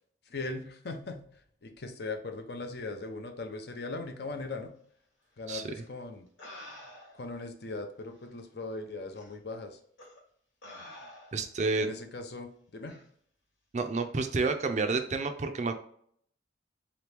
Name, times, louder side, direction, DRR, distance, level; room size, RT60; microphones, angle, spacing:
voice 1, 0.3-1.2 1.6-4.7 5.4-6.2 7.2-9.8 11.8-13.0, left 3 dB, 55° left, 6 dB, 0.6 m, -39 dB
sound 1, 5.7-5.9 6.4-7.3 8.2-8.3 9.1-9.3 10.0-10.2 10.6-11.6 12.9-13.1, left 1 dB, 80° left, 1.3 m, -49 dB
voice 2, 11.3-11.9 13.7-15.7, right 3 dB, 35° right, 7 dB, 0.4 m, -29 dB
4.0 x 3.0 x 3.4 m, 0.64 s
head